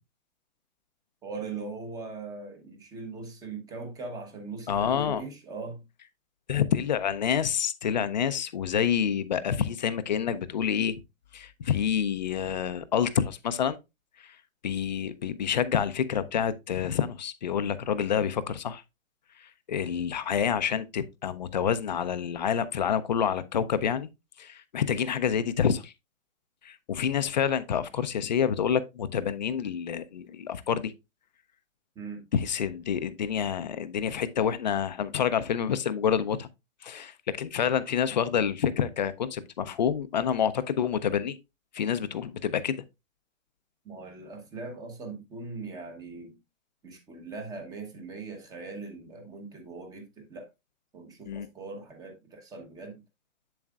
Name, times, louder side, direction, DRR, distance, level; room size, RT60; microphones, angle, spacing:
voice 1, 1.2-5.8 31.9-32.2 43.8-46.4 46.8-50.5 50.9-53.0, right 3 dB, 10° right, 0.8 m, -40 dB
voice 2, 4.7-5.2 6.5-11.0 11.3-13.8 14.6-18.8 19.7-24.1 24.4-25.9 26.6-30.9 32.3-36.5 36.8-41.4 41.7-42.8 51.2-51.5, left 8 dB, 35° left, 0.4 m, -28 dB
7.7 x 7.3 x 2.3 m
hypercardioid pair, 145°, 42 cm